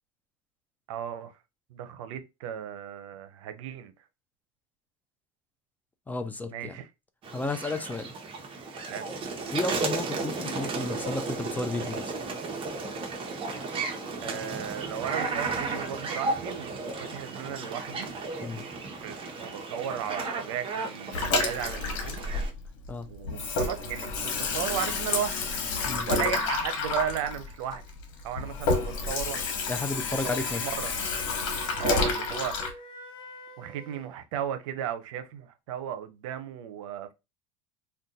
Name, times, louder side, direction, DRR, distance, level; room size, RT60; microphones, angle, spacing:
voice 1, 0.9-1.4 1.7-3.9 6.5-6.9 8.9-9.1 14.2-18.1 18.9-22.2 23.1-25.4 26.1-27.8 28.2-29.4 30.2-30.9 31.8-32.8 33.6-37.1, right 9 dB, 90° right, 0.6 m, -35 dB
voice 2, 6.1-6.8 7.3-8.1 9.5-12.1 18.4-18.7 22.9-23.1 25.8-26.1 29.7-30.7, left 2 dB, 10° left, 0.3 m, -33 dB
sound 1, 7.2-22.5, right 3 dB, 35° right, 0.8 m, -34 dB
Water tap faucet / Sink (filling or washing), 21.1-22.9 23.2-32.7, left 4 dB, 80° left, 1.0 m, -30 dB
Wind instrument woodwind instrument, 29.4-34.1, left 1 dB, 25° left, 1.1 m, -44 dB
2.5 x 2.2 x 3.9 m
supercardioid pair, 125°, 16 cm